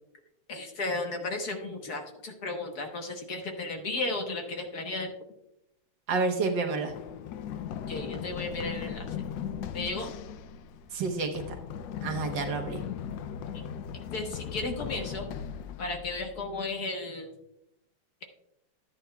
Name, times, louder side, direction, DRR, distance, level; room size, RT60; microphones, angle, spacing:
voice 1, 0.5-5.1 7.9-9.2 9.7-10.1 13.5-13.6 14.1-15.4 15.8-17.3, left 2 dB, 55° left, 3 dB, 1.6 m, -34 dB
voice 2, 6.1-6.9 10.9-11.4 12.0-12.8, right 4 dB, 65° right, 4 dB, 1.8 m, -29 dB
Run, 6.9-16.6, left 8 dB, 75° left, 1.2 m, -38 dB
11.5 x 9.8 x 2.3 m, 0.81 s
omnidirectional pair, 2.2 m